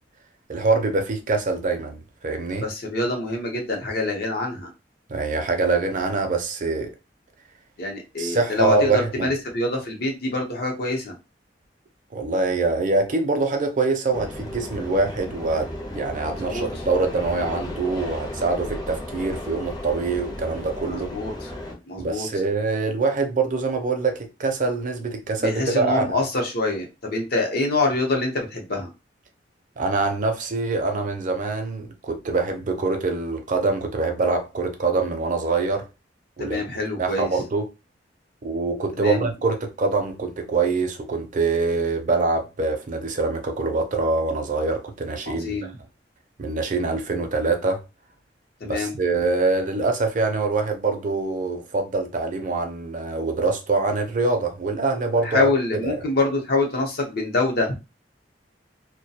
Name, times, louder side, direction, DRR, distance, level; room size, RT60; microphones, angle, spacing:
voice 1, 0.5-2.7 5.1-6.9 8.2-9.3 12.1-21.1 22.0-26.2 29.8-35.9 36.4-36.6 37.0-37.7 38.4-45.7 46.4-47.8 48.6-55.5 55.8-56.0, right 3 dB, 45° right, 0.5 m, -24 dB
voice 2, 2.6-4.7 7.8-11.1 16.3-16.7 20.8-21.3 21.9-22.3 25.4-28.9 36.4-37.3 39.0-39.3 45.3-45.7 48.6-49.0 55.2-57.7, left 2 dB, 60° left, 0.7 m, -25 dB
sound 1, 14.1-21.7, left 1 dB, 25° left, 0.6 m, -34 dB
2.3 x 2.1 x 2.7 m
head